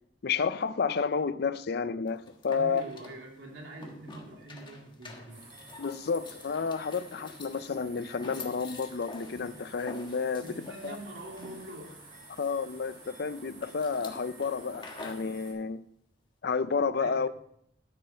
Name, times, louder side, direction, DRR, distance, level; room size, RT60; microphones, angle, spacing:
voice 1, 0.2-2.8 5.8-11.0 12.4-15.8 16.4-17.5, left 5 dB, 60° left, 0.5 m, -31 dB
sound 1, 2.1-15.3, left 2 dB, 25° left, 1.4 m, -48 dB
voice 2, 2.5-5.4 10.4-12.1 17.0-17.2, right 1 dB, 85° right, 2.6 m, -44 dB
sound 2, 5.3-15.5, right 2 dB, 50° right, 4.8 m, -52 dB
13.5 x 8.0 x 4.3 m
head